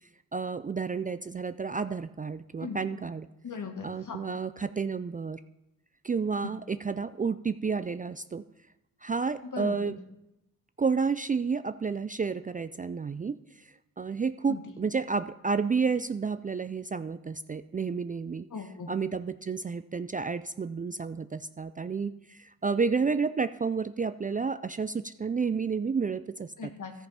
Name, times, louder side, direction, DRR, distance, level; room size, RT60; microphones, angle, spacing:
voice 1, 0.3-3.3 3.8-5.4 6.0-8.4 9.0-10.0 10.8-13.4 14.0-18.5 18.9-26.5, right 5 dB, 25° right, 13 dB, 0.4 m, -30 dB
voice 2, 3.4-4.2 6.4-6.5 9.5-9.9 14.5-14.6 18.5-18.9 26.6-26.9, left 5 dB, 60° left, 4 dB, 1.9 m, -38 dB
13.5 x 5.4 x 5.7 m, 0.88 s
supercardioid pair, 50°, 35 cm